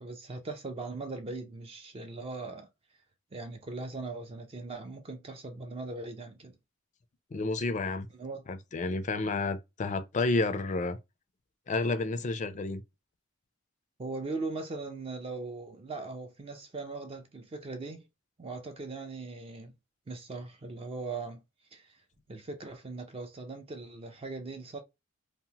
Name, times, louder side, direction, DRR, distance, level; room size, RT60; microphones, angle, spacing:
voice 1, 0.0-2.7 3.3-6.5 8.2-8.5 14.0-18.0 18.4-19.7 20.1-21.4 21.7-22.0 22.3-24.8, right 3 dB, 25° right, 0.4 m, -39 dB
voice 2, 7.3-8.1 8.5-11.0 11.7-12.8, left 3 dB, 35° left, 0.4 m, -30 dB
2.9 x 2.0 x 2.8 m
head